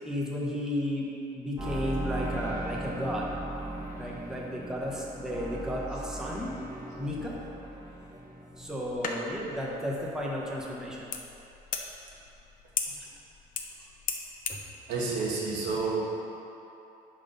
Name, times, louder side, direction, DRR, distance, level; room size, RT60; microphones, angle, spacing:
voice 1, 0.0-3.3 4.0-6.5 7.0-7.4 8.6-11.2 13.0-13.1 14.5-14.6, equal, 5° right, -4 dB, 1.1 m, -33 dB
sound 1, 1.6-9.1 9.3-10.0 10.3-10.4, right 1 dB, 20° right, 1.6 m, -38 dB
sound 2, 8.5-14.7, left 6 dB, 55° left, 0.7 m, -38 dB
voice 2, 14.9-16.0, right 4 dB, 90° right, -4 dB, 1.4 m, -29 dB
6.1 x 5.0 x 5.4 m, 2.9 s
cardioid pair, 110°, 17 cm